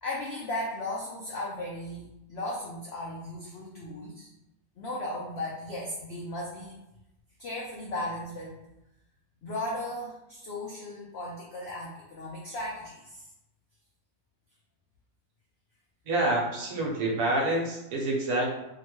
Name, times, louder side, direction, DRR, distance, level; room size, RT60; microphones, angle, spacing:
voice 1, 0.0-4.3 4.8-6.8 7.4-8.5 9.4-13.2, left 1 dB, 90° left, -4 dB, 0.5 m, -36 dB
voice 2, 16.1-18.5, right 2 dB, 75° right, -1 dB, 1.2 m, -27 dB
2.8 x 2.2 x 3.0 m, 0.90 s
omnidirectional pair, 1.7 m